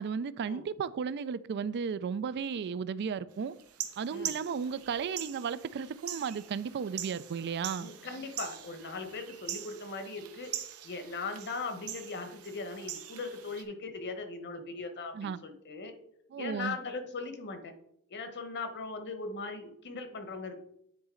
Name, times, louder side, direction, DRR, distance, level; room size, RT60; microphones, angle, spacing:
voice 1, 0.0-3.6 4.0-7.9 15.1-15.4 16.3-16.8, right 6 dB, 50° right, 17 dB, 0.3 m, -34 dB
sound 1, 3.6-13.6, right 10 dB, 90° right, 0.9 m, -43 dB
voice 2, 7.8-10.5 10.8-15.9 16.4-17.7 18.1-20.6, left 3 dB, 55° left, 7 dB, 1.1 m, -39 dB
9.8 x 4.2 x 3.8 m, 0.73 s
head